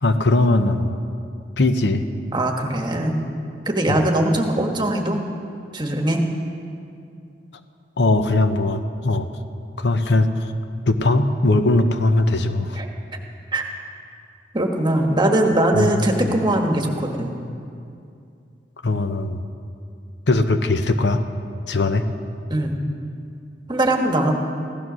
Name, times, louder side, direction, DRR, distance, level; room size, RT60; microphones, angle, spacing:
voice 1, 0.0-1.0 1.6-2.0 3.9-4.0 8.0-9.3 9.8-10.3 10.9-12.8 15.7-16.0 18.8-19.4 20.3-21.2 21.7-22.0, left 2 dB, 70° left, 8 dB, 0.9 m, -19 dB
voice 2, 2.3-3.2 3.6-5.2 5.7-6.2 12.7-12.9 13.5-13.6 14.5-17.4 22.5-22.8 23.7-24.3, right 1 dB, 25° right, 2 dB, 1.4 m, -21 dB
16.0 x 12.5 x 6.2 m, 2.5 s
head